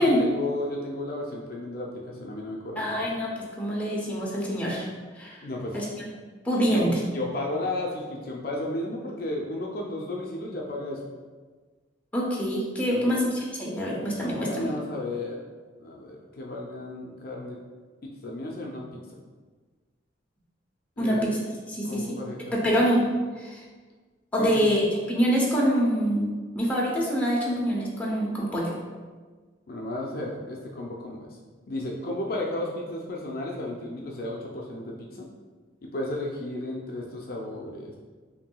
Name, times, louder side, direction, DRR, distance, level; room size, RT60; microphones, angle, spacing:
voice 1, 0.0-3.1 5.4-5.8 6.7-11.0 12.9-13.2 14.4-15.4 15.8-17.6 18.0-19.0 21.0-21.3 21.8-22.8 24.4-24.6 29.7-31.4 31.7-35.3 35.8-38.0, left 1 dB, 50° left, -1 dB, 0.4 m, -33 dB
voice 2, 2.8-4.9 5.2-5.4 5.7-5.8 6.4-6.9 12.1-14.7 21.0-21.4 21.7-22.2 22.5-23.1 23.4-23.6 24.3-28.7, equal, 10° left, -5 dB, 0.7 m, -25 dB
5.7 x 2.6 x 2.3 m, 1.4 s
head